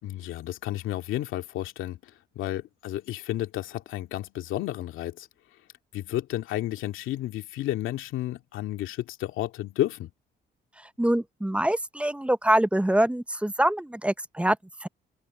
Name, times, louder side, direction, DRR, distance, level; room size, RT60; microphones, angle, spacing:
voice 1, 0.0-5.3 5.9-10.1, left 14 dB, 90° left, 2.3 m, -32 dB
voice 2, 11.0-14.9, right 1 dB, 5° right, 0.7 m, -25 dB
cardioid pair, 90°, 20 cm